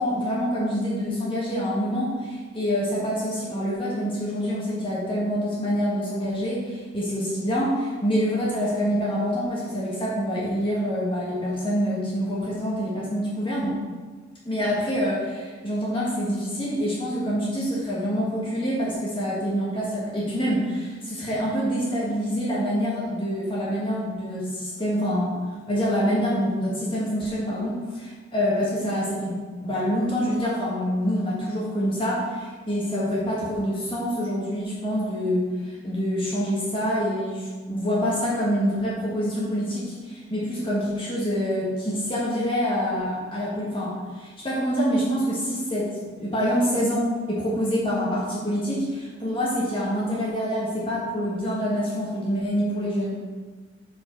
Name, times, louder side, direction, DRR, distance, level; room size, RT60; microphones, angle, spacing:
voice 1, 0.0-13.8 14.4-25.4 25.7-45.9 46.1-53.2, equal, 25° left, -6 dB, 1.5 m, -26 dB
5.5 x 4.8 x 5.1 m, 1.4 s
head